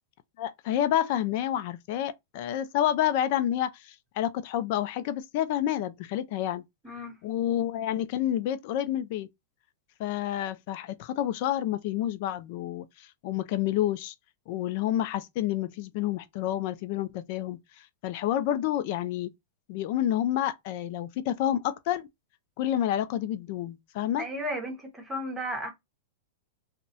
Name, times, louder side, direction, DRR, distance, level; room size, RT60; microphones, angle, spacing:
voice 1, 0.4-6.6 7.2-9.3 10.0-14.1 14.5-17.6 18.0-19.3 19.7-22.1 22.6-24.3, left 11 dB, 50° left, 0.4 m, -29 dB
voice 2, 6.8-7.2 24.2-25.7, equal, 10° right, 0.9 m, -34 dB
2.3 x 2.1 x 2.6 m
supercardioid pair, 145°, 0 cm